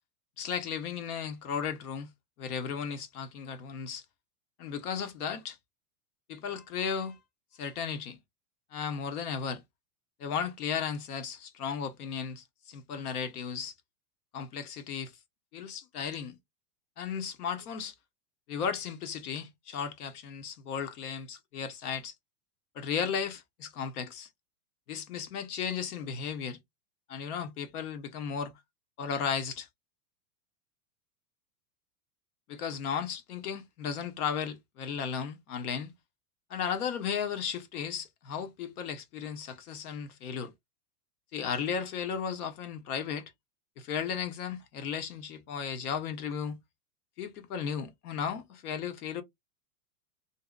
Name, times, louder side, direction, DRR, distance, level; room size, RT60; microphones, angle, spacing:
voice 1, 0.4-2.1 2.4-4.0 4.6-5.6 6.3-7.2 7.6-8.2 8.7-9.6 10.2-13.7 14.3-15.1 15.5-16.4 17.0-17.9 18.5-22.1 22.7-24.3 24.9-26.6 27.1-28.6 29.0-29.7 32.5-35.9 36.5-40.5 41.3-43.3 43.8-46.6 47.2-49.2, left 7 dB, 70° left, 0.9 m, -35 dB
2.7 x 2.1 x 2.3 m
supercardioid pair, 170°, 47 cm